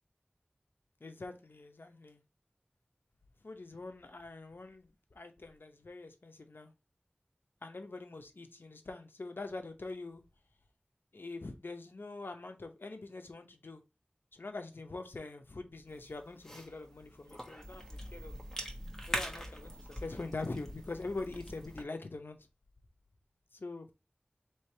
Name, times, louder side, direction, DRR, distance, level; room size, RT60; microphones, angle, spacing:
voice 1, 1.0-2.2 3.4-6.7 7.6-10.2 11.1-13.8 14.3-18.3 19.1-22.4 23.5-23.9, left 3 dB, 85° left, 0.8 m, -44 dB
Cough / Chewing mastication, 15.9-21.8, equal, 10° left, 1.3 m, -43 dB
3.3 x 3.1 x 4.4 m
wide cardioid pair, 45°, 4 cm